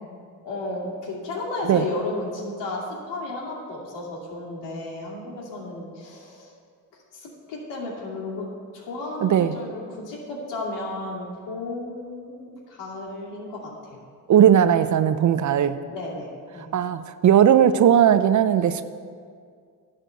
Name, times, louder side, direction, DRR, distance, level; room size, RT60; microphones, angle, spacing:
voice 1, 0.4-6.5 7.1-8.4 8.7-14.0 15.9-16.7, left 2 dB, 70° left, -3 dB, 2.6 m, -33 dB
voice 2, 9.2-9.5 14.3-15.8 16.7-18.8, right 9 dB, 45° right, 12 dB, 0.5 m, -18 dB
11.0 x 4.4 x 7.8 m, 2.2 s
supercardioid pair, 65°, 44 cm